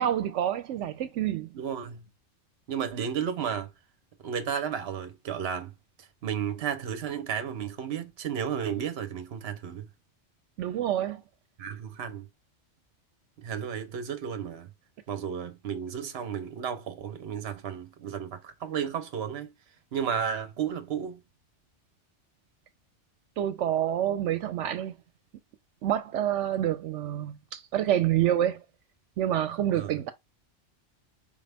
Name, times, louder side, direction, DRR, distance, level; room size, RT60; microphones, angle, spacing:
voice 1, 0.0-1.5 10.6-11.2 23.4-24.9 25.8-28.6 29.2-30.1, right 11 dB, 85° right, 0.9 m, -27 dB
voice 2, 1.5-2.0 2.7-3.7 4.2-5.7 6.0-9.9 11.6-12.3 13.4-14.7 15.1-19.5 19.9-21.2 29.7-29.9, right 8 dB, 60° right, 1.0 m, -33 dB
5.2 x 2.4 x 3.4 m
omnidirectional pair, 1.2 m